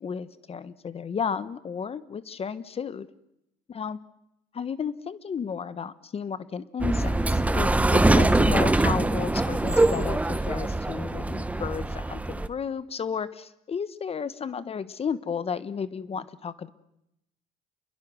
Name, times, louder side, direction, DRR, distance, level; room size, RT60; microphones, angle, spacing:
voice 1, 0.0-3.1 3.7-4.0 4.5-16.7, left 6 dB, 35° left, 15 dB, 1.2 m, -33 dB
sound 1, 6.8-12.5, right 2 dB, 10° right, 1.0 m, -23 dB
28.5 x 22.0 x 6.3 m, 0.83 s
cardioid pair, 110°, 17 cm